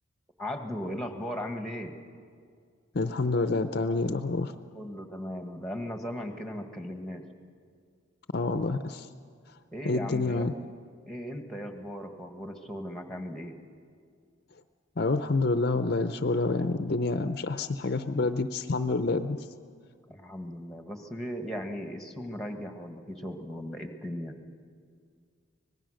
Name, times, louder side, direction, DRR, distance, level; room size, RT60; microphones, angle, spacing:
voice 1, 0.4-2.0 4.7-7.2 9.7-10.5 11.1-13.5 20.1-24.4, equal, ahead, 5 dB, 1.4 m, -37 dB
voice 2, 2.9-4.5 8.3-9.1 9.8-10.5 15.0-19.4, left 3 dB, 50° left, 10 dB, 0.6 m, -28 dB
25.5 x 19.0 x 6.4 m, 2.1 s
head